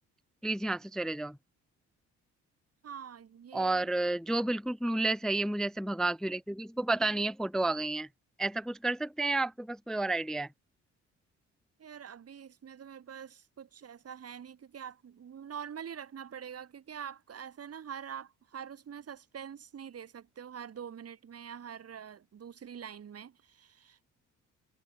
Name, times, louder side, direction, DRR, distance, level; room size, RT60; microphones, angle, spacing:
voice 1, 0.4-1.4 3.5-8.1 8.4-10.5, right 2 dB, ahead, 0.3 m, -31 dB
voice 2, 2.8-3.9 11.8-24.0, right 8 dB, 50° right, 4.4 m, -45 dB
cardioid pair, 90°, 30 cm